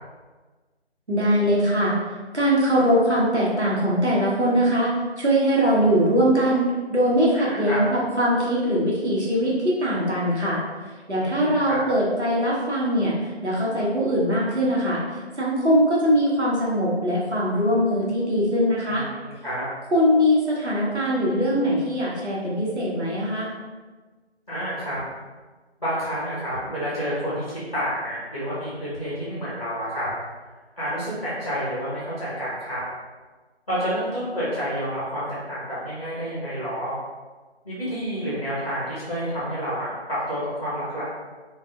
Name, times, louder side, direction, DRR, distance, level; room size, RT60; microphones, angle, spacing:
voice 1, 1.1-1.9 2.3-10.6 11.1-19.0 19.9-23.5, equal, 85° right, -5 dB, 1.0 m, -21 dB
voice 2, 7.4-7.8 11.2-11.8 18.9-19.0 19.4-19.6 24.5-25.0 25.8-30.1 30.8-32.8 33.7-36.9 37.6-41.0, equal, 35° left, -9 dB, 1.0 m, -29 dB
3.2 x 2.5 x 2.5 m, 1.3 s
figure-of-eight pair, 165°, 33 cm